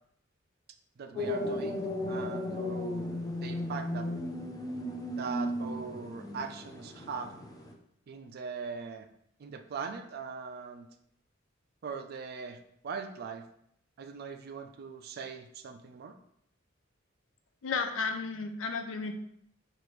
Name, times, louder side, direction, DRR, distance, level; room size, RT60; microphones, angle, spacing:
voice 1, 1.0-4.1 5.2-7.3 8.1-9.1 9.4-10.9 11.8-13.5 14.0-16.2, right 5 dB, 50° right, 7 dB, 0.4 m, -40 dB
sound 1, 1.1-7.7, left 1 dB, 20° left, 0.4 m, -35 dB
voice 2, 17.6-19.1, left 4 dB, 70° left, 6 dB, 0.5 m, -33 dB
4.8 x 2.5 x 3.0 m, 0.71 s
head